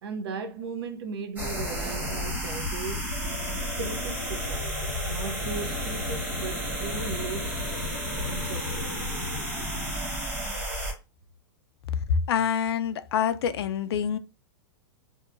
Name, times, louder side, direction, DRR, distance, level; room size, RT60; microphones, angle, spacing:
voice 1, 0.0-3.1 3.8-7.6 8.2-9.0 10.4-10.5, right 5 dB, 75° right, 0.7 m, -37 dB
sound 1, 1.4-10.9, equal, 10° right, 1.1 m, -31 dB
voice 2, 12.1-14.2, left 7 dB, 85° left, 0.4 m, -26 dB
2.7 x 2.3 x 2.4 m
supercardioid pair, 150°, 13 cm